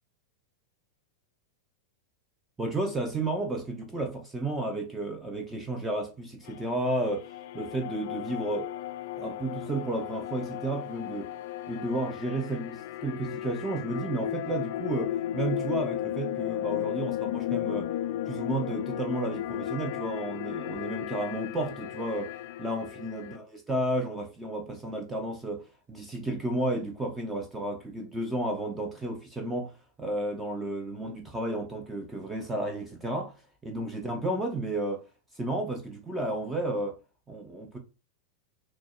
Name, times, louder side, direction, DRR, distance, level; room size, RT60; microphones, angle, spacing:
voice 1, 2.6-8.7 9.2-11.3 11.7-17.9 18.3-33.3 33.6-35.0 35.3-37.0 37.3-37.8, right 1 dB, 10° right, 0.5 m, -32 dB
sound 1, 6.5-23.4, left 12 dB, 55° left, 0.3 m, -35 dB
5.9 x 2.1 x 2.4 m
figure-of-eight pair, 90°, 0 cm